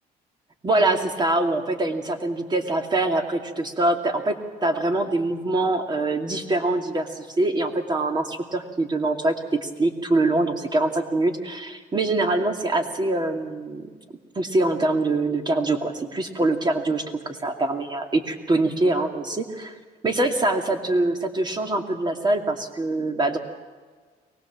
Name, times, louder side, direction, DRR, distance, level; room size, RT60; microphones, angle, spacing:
voice 1, 0.6-4.4 4.6-9.3 9.6-13.9 14.4-19.7 20.0-23.4, right 2 dB, 25° right, 5 dB, 2.6 m, -24 dB
23.5 x 19.5 x 7.4 m, 1.5 s
cardioid pair, 110°, 17 cm